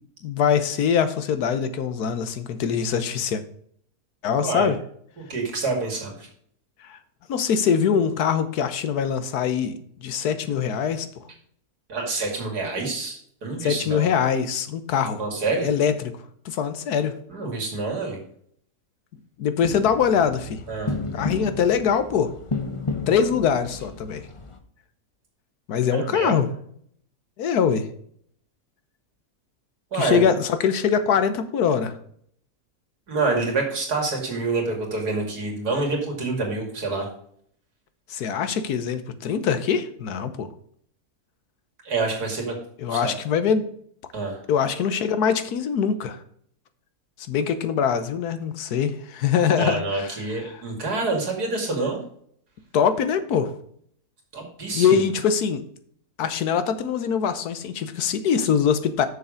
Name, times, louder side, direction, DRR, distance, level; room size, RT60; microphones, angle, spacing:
voice 1, 0.2-3.4 4.2-4.8 6.9-7.0 7.3-11.1 13.6-15.2 15.6-16.1 16.4-17.1 19.4-20.6 21.1-22.3 23.1-24.3 25.7-26.5 27.4-27.9 29.9-31.9 38.1-40.5 42.8-43.7 44.5-46.2 47.3-50.1 50.5-50.6 52.7-53.5 54.7-55.6 56.2-59.1, left 7 dB, 85° left, 11 dB, 1.4 m, -23 dB
voice 2, 4.4-4.7 5.2-6.3 11.9-14.1 15.2-15.7 17.3-18.2 20.7-20.9 25.9-26.4 29.9-30.3 33.1-37.1 41.8-42.5 42.9-43.2 44.1-44.4 49.6-52.0 54.3-55.0, right 3 dB, 90° right, 1 dB, 2.9 m, -27 dB
sound 1, 19.6-24.6, left 3 dB, 30° left, 0.6 m, -33 dB
6.9 x 6.8 x 5.1 m, 0.64 s
omnidirectional pair, 1.6 m